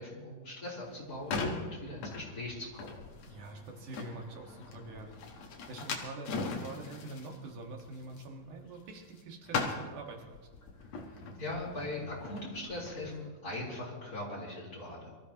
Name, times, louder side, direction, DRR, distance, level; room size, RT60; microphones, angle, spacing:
voice 1, 0.0-3.0 10.8-15.1, left 2 dB, 30° left, -6 dB, 4.2 m, -41 dB
sound 1, 0.8-9.2 9.5-13.1, left 4 dB, 65° left, 2.6 m, -40 dB
voice 2, 3.2-10.5, right 2 dB, 80° right, 1 dB, 3.3 m, -46 dB
24.5 x 14.5 x 3.0 m, 1.3 s
omnidirectional pair, 3.5 m